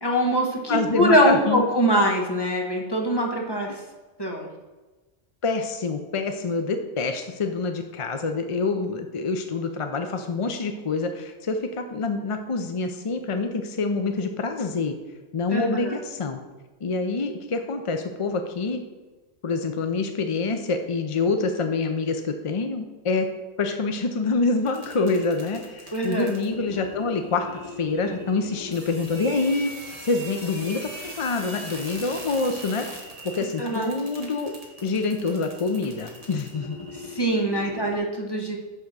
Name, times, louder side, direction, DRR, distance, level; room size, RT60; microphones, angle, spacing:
voice 1, 0.0-3.8 4.2-4.5 15.5-16.0 25.9-26.3 33.6-33.9 36.9-38.6, equal, 20° left, 0 dB, 1.2 m, -23 dB
voice 2, 0.7-1.7 5.4-14.9 15.3-16.4 16.8-18.8 19.4-23.3 23.6-27.5 27.8-29.7 30.0-32.9 33.2-34.5 34.8-36.8, left 3 dB, 45° left, 6 dB, 0.4 m, -26 dB
sound 1, 24.6-38.0, equal, 30° right, 1.8 m, -40 dB
10.0 x 3.6 x 6.5 m, 1.2 s
omnidirectional pair, 1.2 m